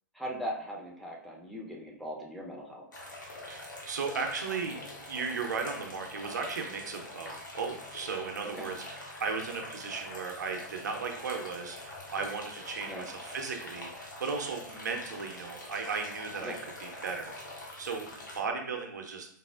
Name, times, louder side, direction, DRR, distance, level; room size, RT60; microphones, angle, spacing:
voice 1, 0.1-2.9 8.4-8.7 12.9-13.1 16.4-16.6, equal, ahead, -2 dB, 0.4 m, -39 dB
sound 1, 2.9-18.4, left 1 dB, 70° left, 0.9 m, -45 dB
voice 2, 3.4-19.3, right 5 dB, 65° right, 3 dB, 0.5 m, -36 dB
4.0 x 2.0 x 2.2 m, 0.62 s
figure-of-eight pair, 110°, 10 cm